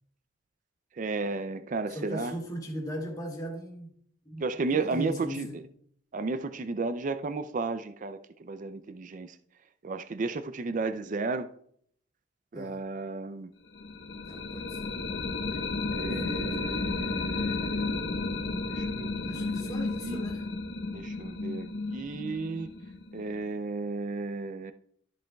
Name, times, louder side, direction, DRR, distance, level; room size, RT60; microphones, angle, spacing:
voice 1, 1.0-2.3 4.4-5.6 6.1-9.4 9.8-11.5 12.5-13.5 15.9-19.7 20.0-20.2 20.9-22.7 23.1-24.7, right 3 dB, 40° right, 0.4 m, -34 dB
voice 2, 1.9-3.9 4.2-4.4 4.7-5.7 12.5-12.8 14.3-15.0 16.0-16.5 19.3-20.5, equal, 20° left, 2.1 m, -38 dB
sound 1, 13.7-23.5, left 3 dB, 60° left, 1.0 m, -33 dB
13.0 x 7.4 x 2.3 m
head